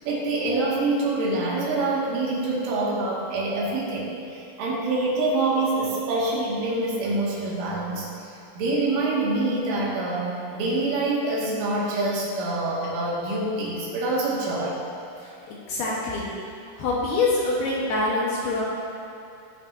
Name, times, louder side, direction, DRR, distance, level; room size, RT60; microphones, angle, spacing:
voice 1, 0.0-14.8, right 2 dB, 80° right, -6 dB, 4.6 m, -26 dB
voice 2, 15.2-16.3 16.8-18.6, left 3 dB, 65° left, -5 dB, 2.8 m, -25 dB
19.0 x 8.7 x 2.8 m, 2.9 s
omnidirectional pair, 5.6 m